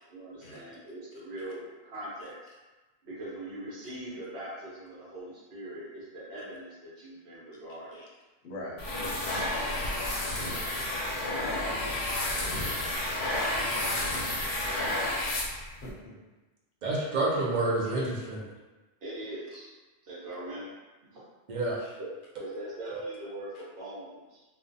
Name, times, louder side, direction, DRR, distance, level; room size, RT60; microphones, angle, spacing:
voice 1, 0.1-2.5 3.0-8.0 19.0-19.7 20.0-20.7 21.0-21.2 22.0-22.1 22.4-24.4, right 1 dB, 75° right, -9 dB, 0.9 m, -41 dB
voice 2, 8.4-8.8 12.2-12.9 15.7-16.1 17.8-17.9 18.2-18.3 21.8-22.0, left 1 dB, 60° left, -3 dB, 0.7 m, -44 dB
sound 1, 8.8-15.9, left 1 dB, 85° left, 0.9 m, -31 dB
voice 3, 16.8-18.4 21.5-21.8 22.9-23.0, right 2 dB, 55° right, -4 dB, 0.6 m, -28 dB
2.4 x 2.1 x 2.6 m, 1.2 s
omnidirectional pair, 1.0 m